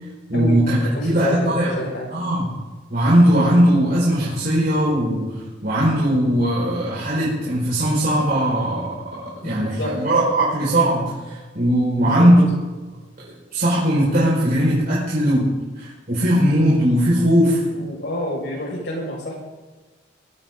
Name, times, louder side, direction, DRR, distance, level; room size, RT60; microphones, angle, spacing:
voice 1, 0.3-0.7 1.0-1.7 2.1-2.5 2.9-12.4 13.5-15.5 15.8-17.8, equal, 50° right, -8 dB, 5.4 m, -19 dB
voice 2, 1.0-2.1 9.4-9.9 12.0-12.3 17.7-19.4, left 1 dB, 65° left, -1 dB, 6.2 m, -28 dB
21.5 x 16.0 x 4.0 m, 1.3 s
head